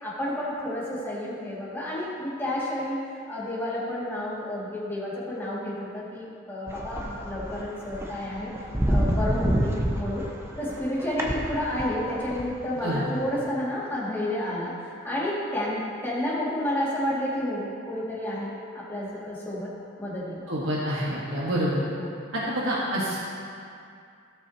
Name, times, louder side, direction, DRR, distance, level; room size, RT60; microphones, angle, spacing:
voice 1, 0.0-8.5 8.9-10.2 10.6-19.7 20.0-20.5 22.0-22.1, left 1 dB, 10° left, -8 dB, 2.2 m, -30 dB
sound 1, 6.7-12.4 12.8-13.0 13.4-13.5, equal, 15° right, 0.7 m, -28 dB
voice 2, 20.5-21.8 22.3-23.2, equal, 75° right, -7 dB, 1.4 m, -27 dB
17.0 x 6.1 x 2.9 m, 2.4 s
head